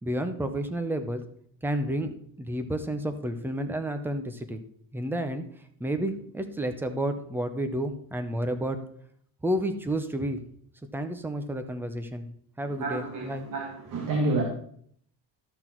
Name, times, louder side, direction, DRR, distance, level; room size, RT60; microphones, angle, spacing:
voice 1, 0.0-1.2 1.6-2.1 2.4-4.6 4.9-5.4 5.8-8.8 9.4-10.4 10.9-12.3 12.6-13.5, right 1 dB, 5° right, 8 dB, 0.6 m, -30 dB
voice 2, 12.8-14.4, right 2 dB, 45° right, 0 dB, 1.9 m, -29 dB
13.0 x 6.1 x 4.4 m, 0.63 s
cardioid pair, 165°, 43 cm